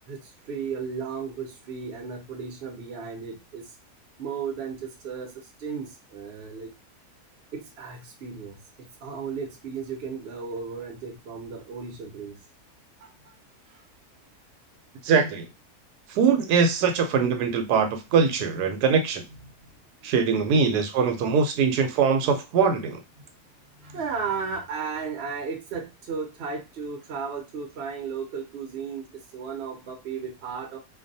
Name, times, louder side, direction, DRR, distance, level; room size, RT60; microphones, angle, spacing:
voice 1, 0.1-3.7 4.2-6.7 7.5-8.6 9.0-12.4 13.0-13.3 13.7-13.8 19.4-19.7 20.0-20.1 20.5-20.7 21.4-21.6 21.9-22.0 23.8-30.8, right 5 dB, 50° right, 2 dB, 0.8 m, -35 dB
voice 2, 15.0-15.4 16.2-19.2 20.0-23.0, right 5 dB, 85° right, 5 dB, 1.1 m, -22 dB
2.6 x 2.2 x 2.6 m, 0.25 s
omnidirectional pair, 1.7 m